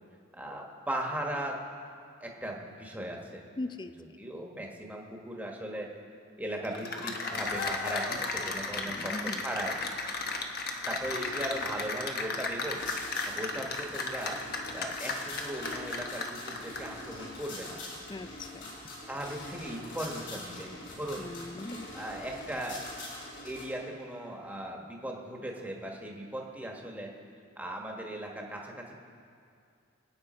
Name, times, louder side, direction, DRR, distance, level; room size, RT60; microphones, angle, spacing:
voice 1, 0.3-1.6 2.2-3.4 4.2-5.9 6.4-9.1 9.4-9.7 10.9-12.8 13.2-14.4 14.7-17.8 19.1-21.3 21.9-22.8 23.4-27.1 27.6-28.9, right 1 dB, 10° right, 0 dB, 1.5 m, -38 dB
voice 2, 3.6-4.2 8.9-9.4 18.1-18.7 21.2-21.9, left 2 dB, 20° left, 11 dB, 0.4 m, -40 dB
Cheering / Applause, 6.6-17.0, left 3 dB, 50° left, 1.1 m, -35 dB
sound 1, 7.3-23.6, left 2 dB, 65° left, 4.4 m, -45 dB
24.5 x 8.8 x 4.4 m, 2.4 s
head